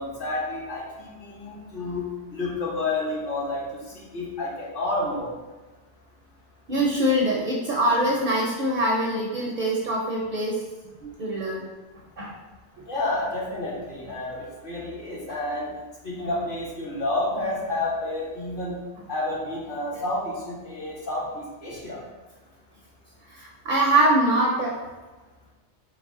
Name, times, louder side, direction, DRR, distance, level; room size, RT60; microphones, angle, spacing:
voice 1, 0.0-5.3 12.9-15.7 16.0-18.8 19.1-22.0, left 2 dB, 50° left, -5 dB, 1.0 m, -30 dB
voice 2, 6.7-10.6 11.0-11.7 12.2-12.3 19.9-20.0 23.3-24.8, right 1 dB, 55° right, -3 dB, 0.6 m, -23 dB
4.0 x 2.1 x 3.6 m, 1.2 s
omnidirectional pair, 1.2 m